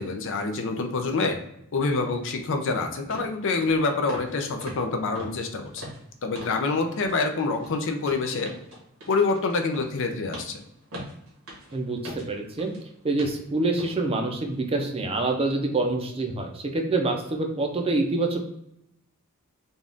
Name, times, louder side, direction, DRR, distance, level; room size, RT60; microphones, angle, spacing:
voice 1, 0.0-1.4 1.7-5.8 6.2-8.5 9.1-10.6, left 3 dB, 60° left, 5 dB, 0.6 m, -26 dB
sound 1, 3.1-3.3 3.6-3.8 4.1-4.3 4.6-6.6 6.9-7.2 7.5-12.8 13.2-13.4 13.8-14.0 14.4-14.5, equal, 80° right, 1.5 m, -42 dB
voice 2, 11.7-12.7 13.0-18.4, right 2 dB, 25° right, 3 dB, 0.6 m, -26 dB
4.0 x 2.4 x 3.4 m, 0.78 s
head